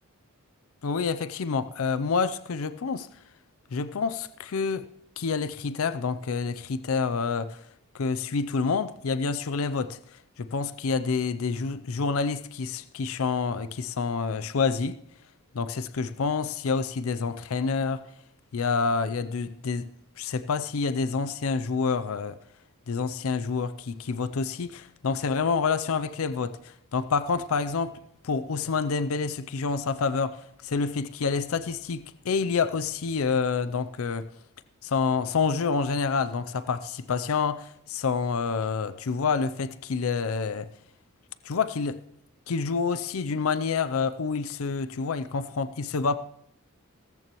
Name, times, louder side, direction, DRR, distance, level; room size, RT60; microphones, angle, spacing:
voice 1, 0.8-3.1 3.7-4.9 5.2-7.6 7.9-10.0 10.4-15.0 15.5-18.0 18.5-19.9 20.2-22.4 22.9-28.0 28.2-34.3 34.8-40.7 41.4-42.0 42.5-46.2, left 5 dB, 65° left, 0.5 m, -28 dB
17.0 x 14.0 x 3.0 m
head